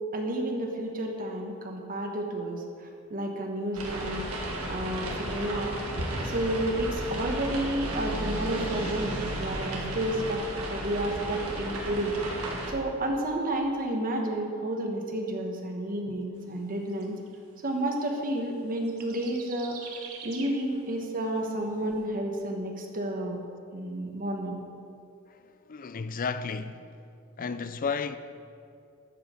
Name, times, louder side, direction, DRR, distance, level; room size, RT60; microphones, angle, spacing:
voice 1, 0.1-4.3 4.7-5.8 6.2-10.4 10.7-12.1 12.7-17.2 17.6-19.8 20.2-23.4 23.7-24.6, right 1 dB, 40° right, 1.3 m, -31 dB
sound 1, 3.7-12.7, right 1 dB, 85° right, 1.8 m, -33 dB
sound 2, 16.9-17.4 18.8-20.7 21.6-21.7, right 6 dB, 70° right, 1.1 m, -44 dB
voice 2, 25.3-27.0 27.4-28.2, left 5 dB, 40° left, 0.4 m, -33 dB
13.0 x 5.6 x 6.6 m
head